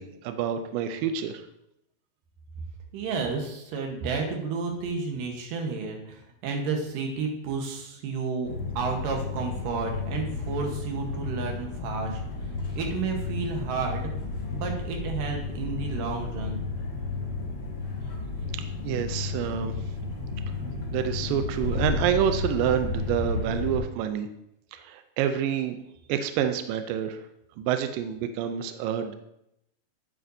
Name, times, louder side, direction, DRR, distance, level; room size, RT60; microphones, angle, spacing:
voice 1, 0.0-1.4 18.8-19.7 20.9-24.3 24.7-25.8 26.1-27.2 27.6-29.1, right 9 dB, 90° right, 9 dB, 1.9 m, -28 dB
voice 2, 2.9-12.2 12.7-14.1 14.5-16.6, right 4 dB, 65° right, 2 dB, 2.5 m, -31 dB
sound 1, 8.4-23.8, left 3 dB, 45° left, 1.3 m, -32 dB
9.5 x 7.6 x 2.7 m, 0.80 s
omnidirectional pair, 4.6 m